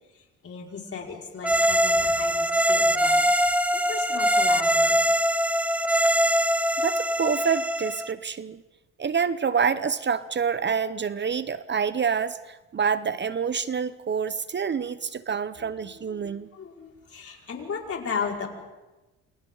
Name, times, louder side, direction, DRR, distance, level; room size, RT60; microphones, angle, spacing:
voice 1, 0.1-5.1 14.7-14.9 15.6-18.5, left 5 dB, 50° left, -1 dB, 5.5 m, -36 dB
sound 1, 1.4-8.1, equal, 5° right, 0.7 m, -22 dB
voice 2, 6.8-8.6 9.0-16.5, right 6 dB, 35° right, 14 dB, 0.8 m, -27 dB
29.0 x 27.5 x 4.0 m, 1.1 s
cardioid pair, 90°, 30 cm